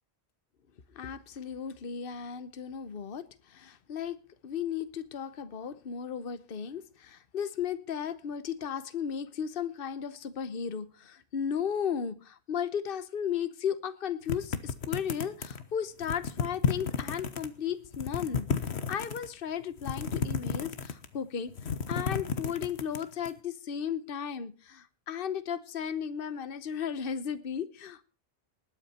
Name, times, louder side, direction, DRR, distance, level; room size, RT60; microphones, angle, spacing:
voice 1, 0.9-21.6 21.9-28.0, left 8 dB, 60° left, 1.1 m, -35 dB
sound 1, 14.3-15.6 16.0-17.5 17.9-19.3 19.8-21.2 21.5-23.3, left 6 dB, 80° left, 1.5 m, -32 dB
20.0 x 8.8 x 4.3 m
omnidirectional pair, 1.1 m